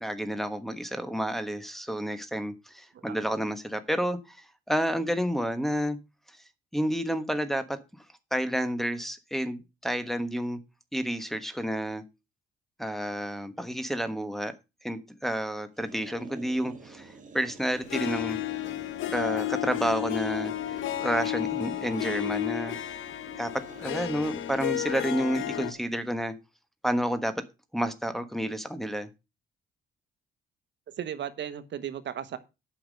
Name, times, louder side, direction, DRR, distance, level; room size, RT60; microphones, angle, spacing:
voice 1, 0.0-6.0 6.7-7.8 8.3-10.6 10.9-12.0 12.8-14.5 14.8-18.4 19.1-22.8 23.4-26.3 26.8-27.4 27.7-29.1, equal, ahead, 1.3 m, -30 dB
sound 1, 15.8-26.2, right 4 dB, 40° right, 2.0 m, -48 dB
Harp, 17.9-25.7, left 14 dB, 85° left, 1.0 m, -32 dB
voice 2, 31.0-32.4, right 9 dB, 65° right, 1.2 m, -35 dB
8.7 x 5.9 x 6.5 m
cardioid pair, 90°, 20 cm